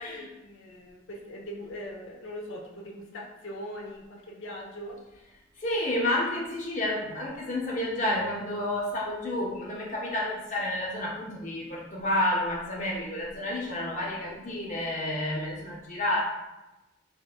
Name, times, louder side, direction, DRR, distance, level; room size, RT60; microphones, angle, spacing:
voice 1, 0.0-5.0, equal, 80° left, 0 dB, 0.7 m, -41 dB
voice 2, 5.6-16.2, left 1 dB, 40° left, -3 dB, 0.6 m, -30 dB
4.1 x 3.7 x 2.3 m, 1.0 s
head